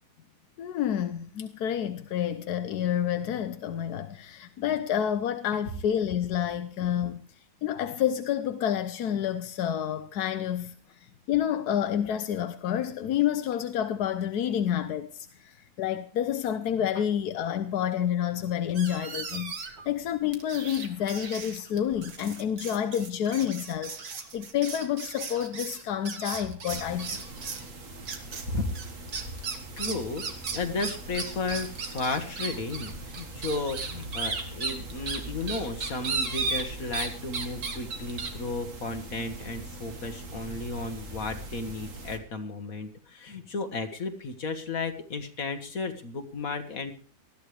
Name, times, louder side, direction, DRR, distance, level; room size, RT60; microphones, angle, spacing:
voice 1, 0.6-7.2 7.6-10.7 11.3-27.2, left 10 dB, 90° left, 1.4 m, -29 dB
sound 1, 18.7-19.9 20.3-27.7 28.1-28.5 28.7-37.1 37.3-38.3, right 4 dB, 80° right, 2.3 m, -35 dB
sound 2, 26.7-42.2, right 2 dB, 55° right, 2.2 m, -42 dB
voice 2, 29.8-30.3 30.5-46.9, left 3 dB, 65° left, 2.0 m, -34 dB
20.5 x 13.5 x 3.3 m
omnidirectional pair, 1.6 m